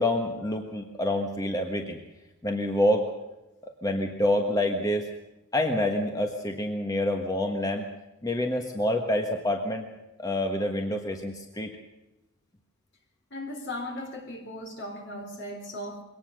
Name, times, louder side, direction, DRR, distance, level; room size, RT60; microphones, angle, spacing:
voice 1, 0.0-2.0 2.4-3.1 3.6-5.1 5.5-7.9 8.2-9.8 10.2-11.7, left 1 dB, 15° left, 4 dB, 1.5 m, -27 dB
voice 2, 13.3-16.0, left 1 dB, 55° left, 4 dB, 4.0 m, -37 dB
23.0 x 18.0 x 6.6 m, 0.97 s
head